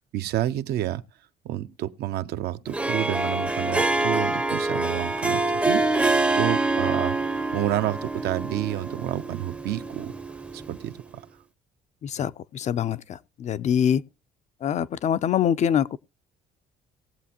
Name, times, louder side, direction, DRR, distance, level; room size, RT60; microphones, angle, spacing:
voice 1, 0.1-1.0 1.4-6.1 6.3-10.1 10.5-11.2, right 13 dB, 70° right, 0.7 m, -29 dB
Harp, 2.7-10.9, right 2 dB, 5° right, 0.5 m, -26 dB
voice 2, 12.0-14.0 14.6-16.0, left 9 dB, 45° left, 0.5 m, -24 dB
19.0 x 7.6 x 2.8 m
cardioid pair, 110°, 17 cm